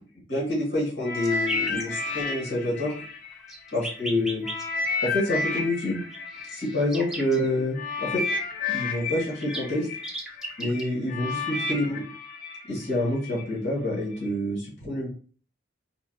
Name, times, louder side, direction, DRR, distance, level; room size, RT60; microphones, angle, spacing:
voice 1, 0.3-2.9 3.7-4.4 5.0-6.0 6.5-8.2 8.7-9.9 10.6-12.0 12.7-15.1, left 1 dB, 80° left, -6 dB, 1.7 m, -27 dB
sound 1, 1.0-4.0 4.4-13.4 14.1-14.3, left 4 dB, 50° left, 0.8 m, -32 dB
sound 2, 1.2-1.8 3.3-4.6 6.1-7.5 8.8-8.9 9.0-10.8, right 1 dB, 5° right, 0.6 m, -36 dB
3.9 x 2.8 x 2.8 m, 0.42 s
head